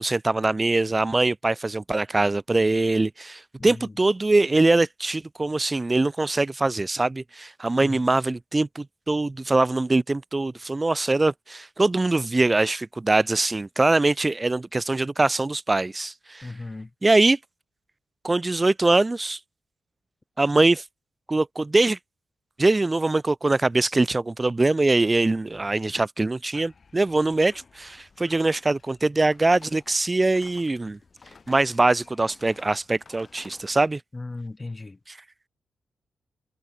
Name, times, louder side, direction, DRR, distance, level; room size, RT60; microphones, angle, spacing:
voice 1, 0.0-16.5 17.0-17.4 18.2-19.4 20.4-20.8 21.3-22.0 22.6-31.0 31.5-34.0 35.1-35.2, right 2 dB, 20° right, 0.5 m, -22 dB
voice 2, 3.6-3.9 7.8-8.0 16.4-16.9 34.1-35.0, left 2 dB, 20° left, 0.9 m, -36 dB
sound 1, 26.5-33.9, left 5 dB, 40° left, 5.9 m, -52 dB
cardioid pair, 105°, 0 cm